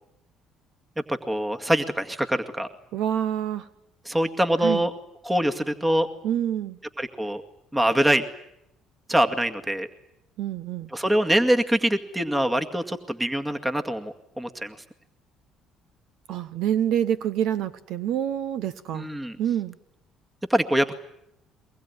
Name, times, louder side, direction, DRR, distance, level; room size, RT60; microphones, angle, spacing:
voice 1, 1.1-2.7 4.1-4.9 5.3-6.1 7.0-7.4 7.7-8.2 9.1-9.9 10.9-14.8 18.9-19.4 20.5-21.0, right 1 dB, 10° right, 7 dB, 2.1 m, -24 dB
voice 2, 2.9-3.7 4.6-4.8 6.2-6.8 10.4-10.9 16.3-19.1 19.4-19.8, right 10 dB, 70° right, 14 dB, 1.0 m, -27 dB
23.5 x 20.5 x 9.8 m, 0.81 s
supercardioid pair, 70°, 0 cm